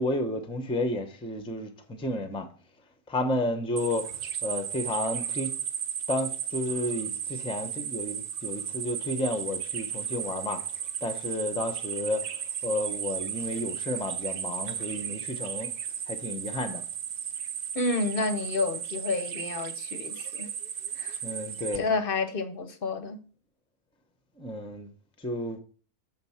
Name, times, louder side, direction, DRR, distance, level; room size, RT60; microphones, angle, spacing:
voice 1, 0.0-2.5 3.1-5.5 6.1-10.6 11.0-12.3 12.6-15.7 16.1-16.8 21.2-21.9 24.4-24.9 25.2-25.6, left 1 dB, 5° left, 0.5 m, -31 dB
sound 1, 3.8-21.8, right 8 dB, 55° right, 0.6 m, -35 dB
voice 2, 17.7-20.5 21.0-21.2 21.7-23.2, left 3 dB, 45° left, 0.8 m, -30 dB
6.7 x 3.9 x 5.6 m
omnidirectional pair, 1.6 m